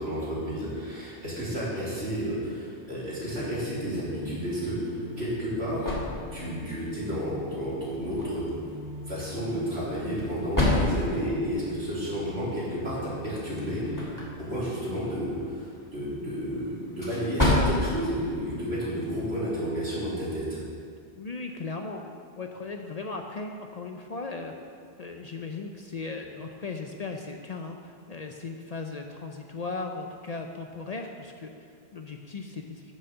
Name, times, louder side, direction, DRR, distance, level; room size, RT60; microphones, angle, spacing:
voice 1, 0.0-6.0 6.3-8.4 9.1-14.2 14.5-20.6, equal, 75° right, -8 dB, 3.4 m, -31 dB
sound 1, 3.2-14.4, left 1 dB, 65° left, 1.1 m, -43 dB
sound 2, 4.9-19.4, left 1 dB, 20° left, 2.0 m, -33 dB
voice 2, 21.1-22.0 22.4-24.5 25.0-32.9, left 3 dB, 45° left, 3 dB, 0.6 m, -37 dB
8.8 x 6.4 x 6.7 m, 2.2 s
omnidirectional pair, 1.1 m